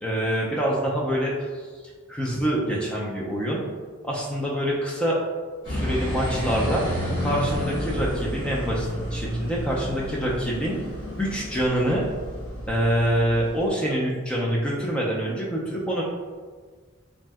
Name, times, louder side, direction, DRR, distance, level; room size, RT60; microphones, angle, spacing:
voice 1, 0.0-1.5 2.1-3.6 4.0-5.2 5.7-6.8 7.2-10.8 11.2-12.0 12.7-16.0, equal, 5° left, -4 dB, 0.3 m, -25 dB
sound 1, 5.6-13.7, equal, 20° left, 0.7 m, -30 dB
2.6 x 2.1 x 3.3 m, 1.5 s
head